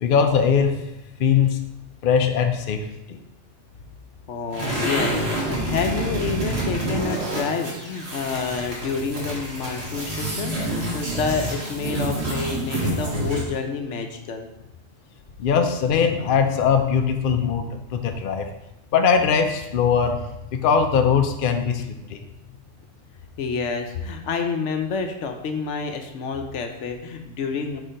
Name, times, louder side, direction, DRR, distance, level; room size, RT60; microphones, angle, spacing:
voice 1, 0.0-0.8 1.2-1.6 2.0-3.2 15.4-18.5 18.9-20.2 20.5-22.2, left 6 dB, 55° left, 5 dB, 0.7 m, -21 dB
voice 2, 4.3-14.5 23.4-27.8, left 5 dB, 75° left, 5 dB, 1.0 m, -28 dB
sound 1, 4.5-13.6, right 1 dB, 60° right, 1.7 m, -28 dB
4.5 x 4.4 x 5.0 m, 0.90 s
omnidirectional pair, 1.2 m